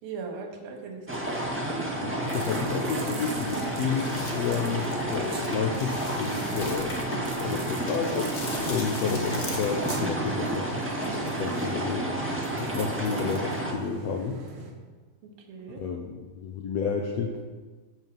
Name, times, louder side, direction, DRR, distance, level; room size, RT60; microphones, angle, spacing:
voice 1, 0.0-1.4 12.7-12.8 15.2-15.8, right 5 dB, 90° right, 2 dB, 3.5 m, -40 dB
sound 1, 1.1-13.7, right 1 dB, 10° right, 0.6 m, -31 dB
voice 2, 1.9-6.9 7.4-8.3 8.6-10.9 11.4-12.0 12.7-14.4 15.8-17.4, left 6 dB, 80° left, 2 dB, 1.5 m, -31 dB
sound 2, 2.2-14.7, right 4 dB, 60° right, 2.5 m, -41 dB
sound 3, 3.4-10.0, left 2 dB, 55° left, 0.8 m, -40 dB
13.5 x 5.8 x 7.5 m, 1.4 s
omnidirectional pair, 4.1 m